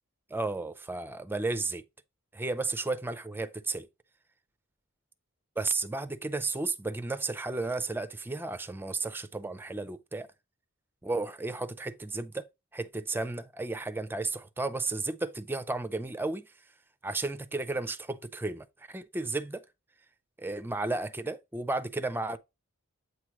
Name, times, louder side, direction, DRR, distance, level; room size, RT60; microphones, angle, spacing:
voice 1, 0.3-1.8 2.3-3.9 5.6-10.3 11.0-12.4 12.7-16.5 17.0-19.6 20.4-22.4, right 3 dB, 10° right, 0.4 m, -33 dB
8.2 x 3.1 x 4.7 m
head